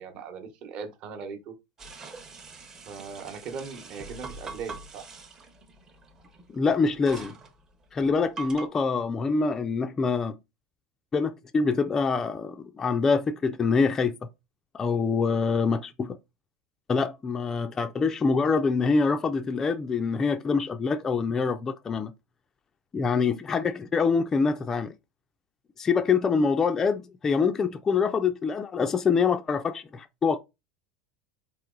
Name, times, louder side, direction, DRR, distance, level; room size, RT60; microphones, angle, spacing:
voice 1, 0.0-1.5 2.9-5.1, right 5 dB, 40° right, 1.0 m, -39 dB
sound 1, 1.8-8.7, right 4 dB, 20° right, 0.7 m, -44 dB
voice 2, 6.5-7.4 7.9-10.4 11.1-14.2 14.7-16.2 16.9-22.1 22.9-24.9 25.8-30.4, left 5 dB, 15° left, 0.3 m, -25 dB
4.5 x 3.0 x 3.8 m
supercardioid pair, 165°, 3 cm